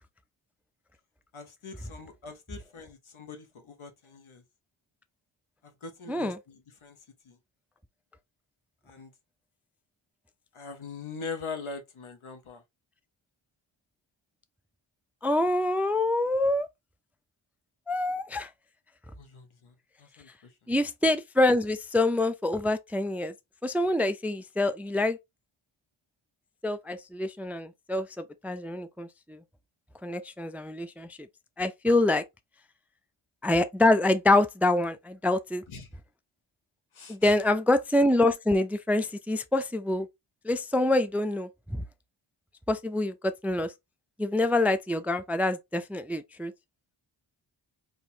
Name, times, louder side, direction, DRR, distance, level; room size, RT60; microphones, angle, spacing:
voice 1, 1.3-4.4 5.6-7.0 7.2-7.4 8.9-9.1 10.5-12.6 19.1-20.3 35.7-35.9 36.9-37.4, left 4 dB, 80° left, 1.1 m, -42 dB
voice 2, 15.2-16.7 17.9-18.5 20.7-23.3 23.6-25.2 26.6-28.1 28.4-29.4 30.0-31.1 31.6-32.2 33.4-35.6 37.1-40.1 40.5-41.5 42.7-43.1 43.4-43.7 44.2-46.5, left 2 dB, 5° right, 0.3 m, -26 dB
4.2 x 2.8 x 2.8 m
cardioid pair, 55°, 48 cm